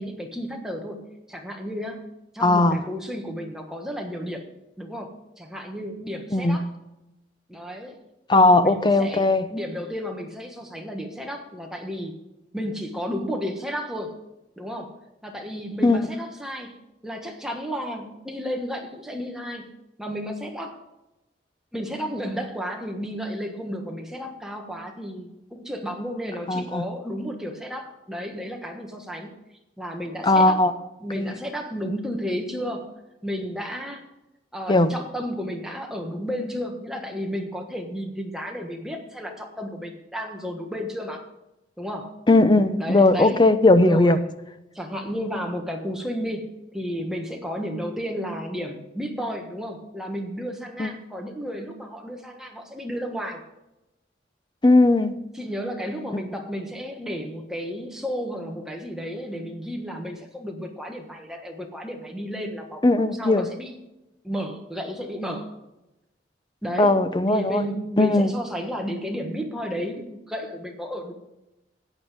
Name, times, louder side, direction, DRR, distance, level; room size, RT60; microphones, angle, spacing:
voice 1, 0.0-2.1 2.3-4.5 4.8-6.6 7.5-8.0 8.3-12.2 12.5-14.2 14.6-14.9 15.2-16.7 17.0-19.7 20.0-20.8 21.7-29.3 29.8-30.6 31.0-32.9 33.2-34.0 34.5-41.2 41.8-42.1 42.8-43.4 43.8-44.3 44.7-53.4 55.3-63.7 64.2-65.6 66.6-67.0 67.3-71.1, equal, 5° right, 1.5 m, -32 dB
voice 2, 2.4-2.8 6.3-6.6 8.3-9.5 15.8-16.0 26.5-26.8 30.2-30.7 31.1-31.3 34.7-34.9 42.3-44.2 50.8-50.9 54.6-55.2 62.8-63.5 66.8-67.6 68.0-68.3, left 2 dB, 25° left, 0.7 m, -18 dB
14.0 x 9.4 x 3.6 m
head